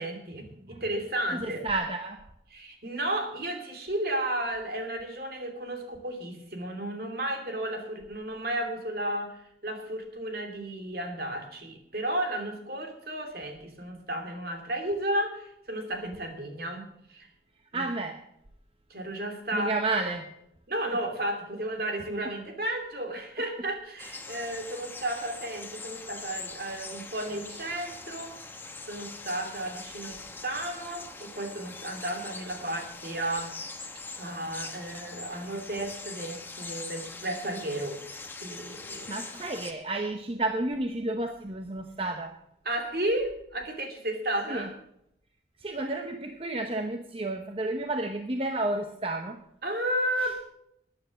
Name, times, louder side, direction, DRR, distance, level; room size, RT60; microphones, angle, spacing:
voice 1, 0.0-1.6 2.5-16.8 17.1-17.3 17.7-17.9 18.9-20.0 20.7-28.3 28.9-33.5 34.2-38.0 38.4-39.1 42.6-44.7 49.6-50.4, right 1 dB, 55° right, 4 dB, 2.8 m, -33 dB
voice 2, 1.3-2.3 17.7-18.3 19.5-20.3 39.1-42.4 44.5-44.7 45.6-49.4 50.2-50.3, right 2 dB, 30° right, 6 dB, 0.8 m, -31 dB
sound 1, 24.0-39.7, left 3 dB, 10° left, 1.0 m, -42 dB
13.5 x 9.7 x 6.2 m, 0.76 s
head